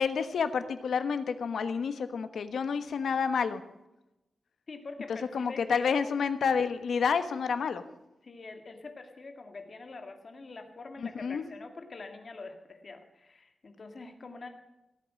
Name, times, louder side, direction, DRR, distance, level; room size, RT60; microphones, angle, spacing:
voice 1, 0.0-3.6 5.3-7.9 11.0-11.4, left 6 dB, 85° left, 10 dB, 1.2 m, -29 dB
voice 2, 4.7-6.0 8.2-14.5, left 3 dB, 40° left, 5 dB, 2.0 m, -45 dB
18.0 x 8.6 x 7.6 m, 0.93 s
wide cardioid pair, 175°, 0 cm